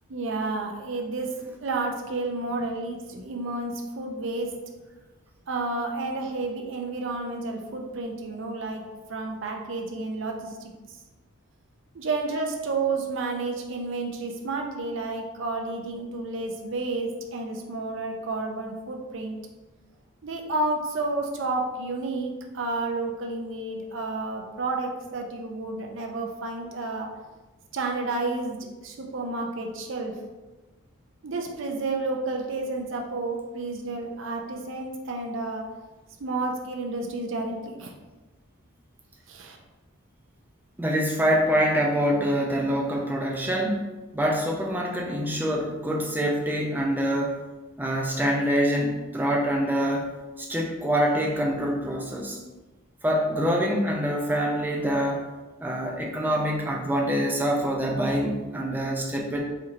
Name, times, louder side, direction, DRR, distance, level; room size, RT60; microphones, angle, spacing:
voice 1, 0.1-4.6 5.5-8.8 9.1-10.7 11.9-19.4 20.2-27.1 27.7-28.6 28.8-30.2 31.2-35.6 36.2-37.9 39.3-39.6, right 3 dB, 60° right, 1 dB, 0.5 m, -31 dB
voice 2, 40.8-43.8 44.1-47.4 47.8-50.1 50.4-52.4 53.0-55.3 55.6-59.4, equal, 10° right, 0 dB, 0.4 m, -25 dB
4.3 x 2.9 x 2.5 m, 1.2 s
head